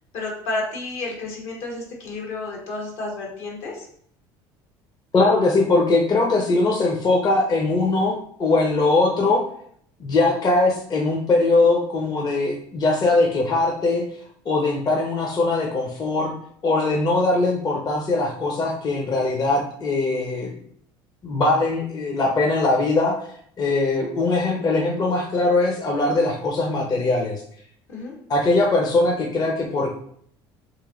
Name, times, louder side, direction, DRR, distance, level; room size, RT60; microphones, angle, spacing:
voice 1, 0.1-3.9 27.9-28.1, left 2 dB, 75° left, -1 dB, 1.3 m, -31 dB
voice 2, 5.1-9.4 10.0-14.0 14.5-16.3 16.6-20.5 21.2-23.2 23.6-27.4 28.3-29.9, left 2 dB, 35° left, 0 dB, 0.7 m, -21 dB
3.1 x 2.7 x 3.7 m, 0.64 s
supercardioid pair, 90°, 11 cm